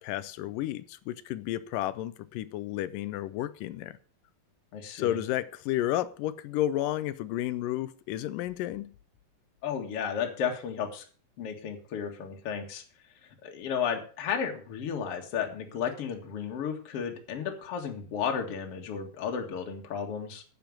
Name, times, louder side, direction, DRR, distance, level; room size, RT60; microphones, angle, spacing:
voice 1, 0.0-4.0 5.0-8.9, left 13 dB, 80° left, 2.3 m, -32 dB
voice 2, 4.7-5.2 9.6-11.0 11.4-12.8 13.2-20.4, left 7 dB, 50° left, 2.5 m, -33 dB
10.5 x 7.9 x 7.3 m
omnidirectional pair, 3.9 m